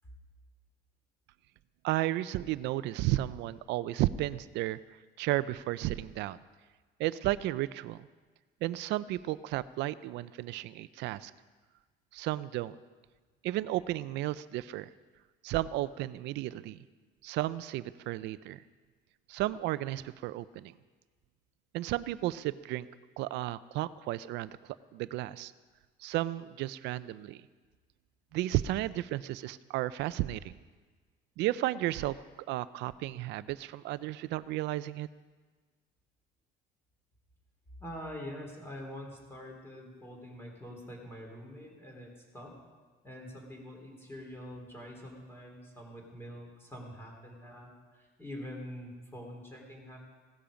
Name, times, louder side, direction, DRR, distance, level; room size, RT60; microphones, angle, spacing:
voice 1, 1.8-4.8 5.2-6.4 7.0-8.1 8.6-11.3 12.1-12.8 13.4-14.9 15.4-16.8 17.2-18.6 19.3-20.7 21.7-22.9 23.2-24.5 24.9-25.5 26.0-27.4 28.3-30.6 31.4-32.2 32.5-35.1, right 15 dB, 70° right, 16 dB, 0.6 m, -33 dB
voice 2, 37.8-42.5 43.0-50.0, equal, 10° left, 0 dB, 3.4 m, -45 dB
16.5 x 13.0 x 5.1 m, 1.4 s
cardioid pair, 145°, 19 cm